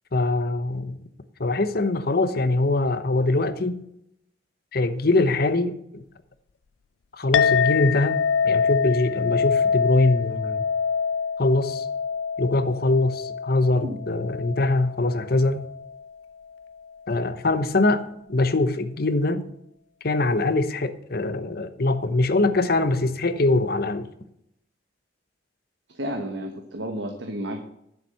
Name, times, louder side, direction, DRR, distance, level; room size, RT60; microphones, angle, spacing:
voice 1, 0.1-1.0 1.4-3.8 4.7-6.0 7.2-8.2 8.4-10.6 11.4-11.9 12.4-15.7 17.1-18.0 18.3-19.5 20.0-24.1, left 2 dB, 55° left, 0.9 m, -23 dB
Chink clink, 7.3-16.0, left 6 dB, 90° left, 0.5 m, -25 dB
voice 2, 25.9-27.6, equal, 80° right, 1.3 m, -32 dB
10.5 x 7.5 x 5.6 m
head